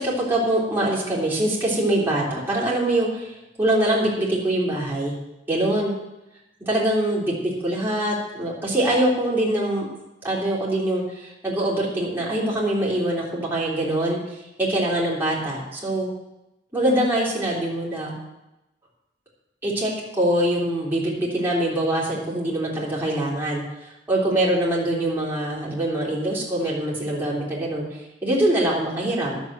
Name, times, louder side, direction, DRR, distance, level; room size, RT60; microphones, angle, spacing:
voice 1, 0.0-5.2 5.5-6.0 6.6-9.9 10.2-14.2 14.6-16.1 16.7-18.1 19.6-27.9 28.2-29.4, right 1 dB, 10° right, -6 dB, 3.5 m, -23 dB
11.0 x 7.3 x 7.5 m, 0.95 s
head